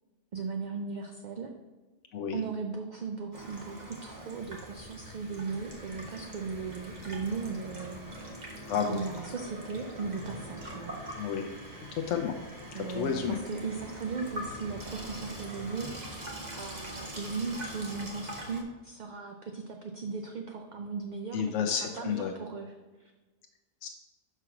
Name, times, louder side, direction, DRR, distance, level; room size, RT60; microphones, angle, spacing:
voice 1, 0.3-1.5 2.3-8.0 8.9-11.0 12.7-15.9 16.6-21.5 21.8-22.7 23.0-23.1, right 4 dB, 55° right, 4 dB, 0.5 m, -37 dB
Water tap faucet / Sink (filling or washing), 3.3-18.6, right 1 dB, 40° right, 1.1 m, -43 dB
voice 2, 8.7-9.0 11.2-11.4 11.7-12.4 12.9-13.4 21.3-22.3 23.8-23.9, left 7 dB, 85° left, 4 dB, 0.9 m, -31 dB
5.9 x 4.6 x 5.8 m, 1.2 s
omnidirectional pair, 1.2 m